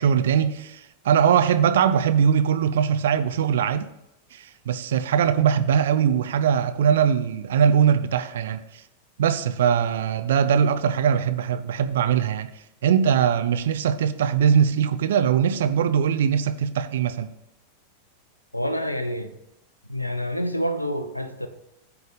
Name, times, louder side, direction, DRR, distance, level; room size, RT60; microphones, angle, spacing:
voice 1, 0.0-3.9 4.3-8.6 9.2-12.5 12.8-17.3, right 8 dB, 60° right, 0.5 m, -21 dB
voice 2, 18.5-19.3 19.9-21.5, equal, 85° left, 0.6 m, -27 dB
9.2 x 3.4 x 5.2 m
figure-of-eight pair, 90°, 0 cm